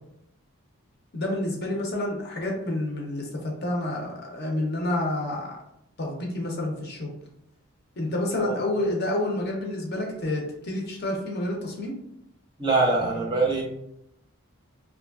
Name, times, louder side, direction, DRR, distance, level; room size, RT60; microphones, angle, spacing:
voice 1, 1.1-5.6 6.0-7.1 8.0-11.9, left 1 dB, 45° left, -1 dB, 0.5 m, -29 dB
voice 2, 12.6-13.6, right 3 dB, 20° right, -1 dB, 0.4 m, -23 dB
3.0 x 2.2 x 2.3 m, 0.79 s
head